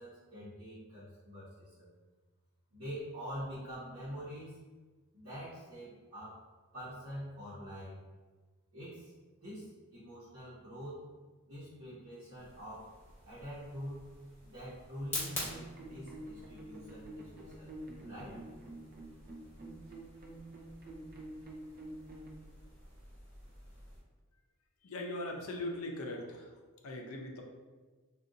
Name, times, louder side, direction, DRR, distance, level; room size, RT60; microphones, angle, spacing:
voice 1, 0.0-1.9 2.7-4.6 5.1-6.4 6.7-8.0 8.7-9.1 9.4-11.1 11.5-12.9 13.3-14.0 14.4-17.7 18.0-18.4, equal, 60° right, -12 dB, 1.0 m, -45 dB
sound 1, 12.4-24.0, left 1 dB, 10° left, 1.0 m, -48 dB
sound 2, 15.2-22.3, right 1 dB, 45° right, 0.5 m, -48 dB
voice 2, 24.8-26.5 26.8-27.4, left 1 dB, 70° left, 2 dB, 0.5 m, -40 dB
2.5 x 2.4 x 3.7 m, 1.3 s
head